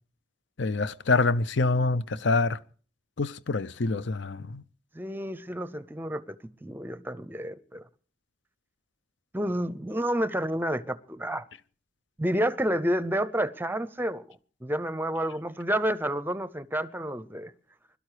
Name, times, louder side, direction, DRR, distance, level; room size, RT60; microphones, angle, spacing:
voice 1, 0.6-2.6 3.2-4.6, left 3 dB, 60° left, 0.6 m, -26 dB
voice 2, 4.9-6.4 6.6-7.8 9.3-11.5 12.2-17.5, right 1 dB, 10° right, 0.6 m, -30 dB
21.5 x 12.5 x 4.9 m
head